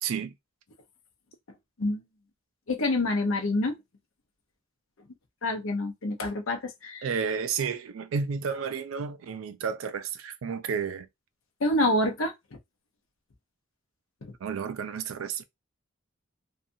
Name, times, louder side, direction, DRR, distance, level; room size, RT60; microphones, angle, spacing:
voice 1, 0.0-0.3 7.0-11.1 14.4-15.4, right 6 dB, 85° right, 0.4 m, -31 dB
voice 2, 2.7-3.7 5.4-7.1 11.6-12.3 14.2-14.3, left 1 dB, 80° left, 0.7 m, -27 dB
2.7 x 2.4 x 2.6 m
head